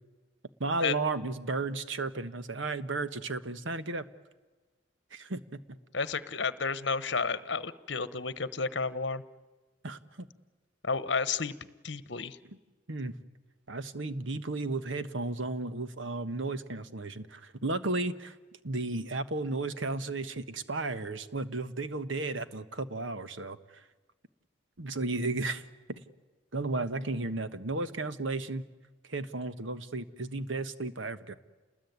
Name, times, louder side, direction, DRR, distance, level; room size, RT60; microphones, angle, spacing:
voice 1, 0.6-4.0 5.1-5.4 9.8-10.3 12.9-13.1 13.7-18.3 18.6-23.6 24.8-25.6 25.9-26.0 26.5-28.6 29.1-31.3, right 3 dB, 70° right, 12 dB, 1.3 m, -34 dB
voice 2, 5.9-9.2 10.8-11.5 11.8-12.4, left 4 dB, 60° left, 15 dB, 1.1 m, -31 dB
29.0 x 20.5 x 9.5 m, 1.3 s
head